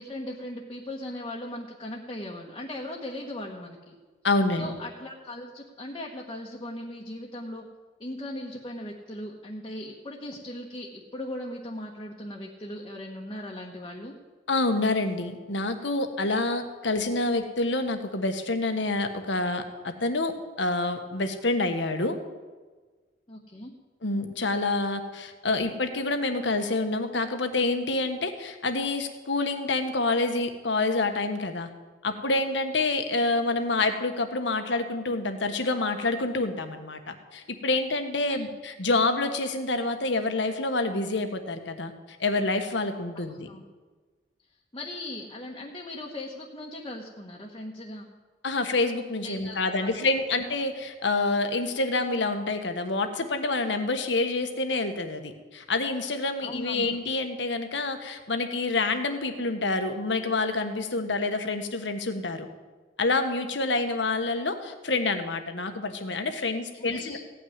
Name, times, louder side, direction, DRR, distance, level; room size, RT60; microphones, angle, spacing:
voice 1, 0.0-4.0 4.6-7.7 8.0-14.1 23.3-23.7 38.3-38.5 43.1-43.6 44.7-48.1 49.2-49.9 56.4-57.0 66.7-67.2, left 1 dB, 25° left, -2 dB, 1.3 m, -38 dB
voice 2, 4.2-4.8 14.5-22.2 24.0-31.7 32.0-43.5 48.4-62.5 63.0-67.2, left 2 dB, 75° left, 7 dB, 1.4 m, -27 dB
16.0 x 6.2 x 9.5 m, 1.4 s
head